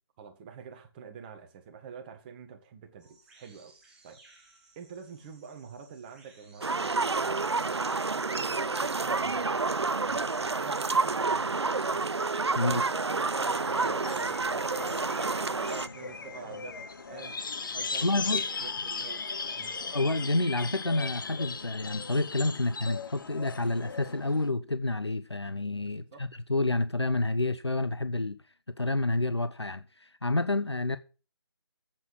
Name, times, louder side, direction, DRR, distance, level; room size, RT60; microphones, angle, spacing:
voice 1, 0.2-3.7 4.0-4.2 4.7-12.1 12.5-17.4 17.7-19.2 19.5-19.8 26.1-26.3, right 6 dB, 20° right, 1.7 m, -47 dB
sound 1, 3.0-19.7, right 3 dB, 5° right, 1.6 m, -61 dB
sound 2, 6.6-15.9, right 3 dB, 85° right, 0.5 m, -29 dB
sound 3, 13.4-24.5, left 4 dB, 50° left, 1.4 m, -37 dB
voice 2, 18.0-18.4 19.9-28.4 28.7-31.0, left 2 dB, 90° left, 1.0 m, -29 dB
8.6 x 8.4 x 8.9 m
figure-of-eight pair, 150°, 14 cm